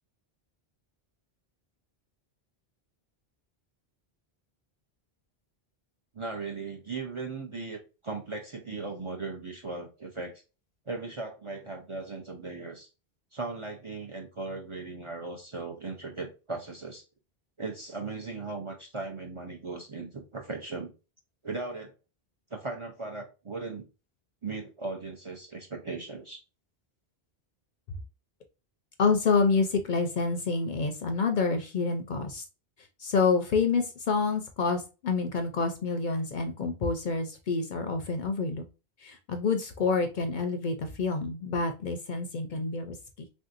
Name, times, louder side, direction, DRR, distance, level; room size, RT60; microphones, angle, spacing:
voice 1, 6.1-10.3 10.9-12.9 13.3-17.0 17.6-20.9 21.4-21.9 22.5-23.8 24.4-26.4, right 3 dB, 40° right, 1 dB, 0.5 m, -37 dB
voice 2, 29.0-32.4 33.0-38.6 39.0-43.0, left 4 dB, 60° left, 6 dB, 0.6 m, -28 dB
3.4 x 2.7 x 2.4 m, 0.31 s
omnidirectional pair, 1.1 m